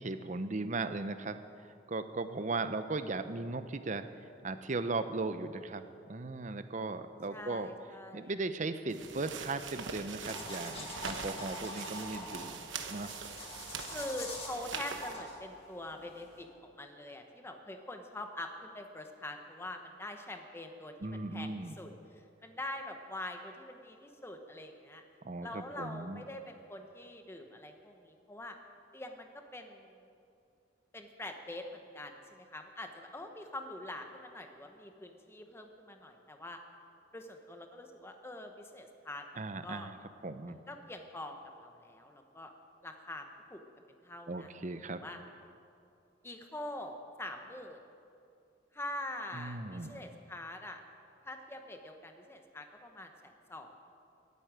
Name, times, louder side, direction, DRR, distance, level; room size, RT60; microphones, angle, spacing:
voice 1, 0.0-1.4 1.9-4.0 4.4-7.7 8.1-12.6 12.9-13.1 21.0-21.7 25.2-26.2 39.4-40.0 40.2-40.6 44.3-45.0 49.3-50.0, right 3 dB, 40° right, 11 dB, 0.7 m, -37 dB
voice 2, 7.3-8.3 13.8-25.0 25.4-28.6 28.9-30.0 30.9-36.6 37.1-39.9 40.5-42.5 42.8-43.6 43.9-44.5 45.0-45.2 46.2-47.8 48.7-50.8 51.2-53.9, left 1 dB, 15° left, 5 dB, 1.0 m, -44 dB
sound 1, 8.9-15.2, right 6 dB, 85° right, 1.1 m, -43 dB
sound 2, 10.2-16.4, left 2 dB, 30° left, 2.3 m, -45 dB
14.0 x 8.5 x 9.1 m, 2.6 s
head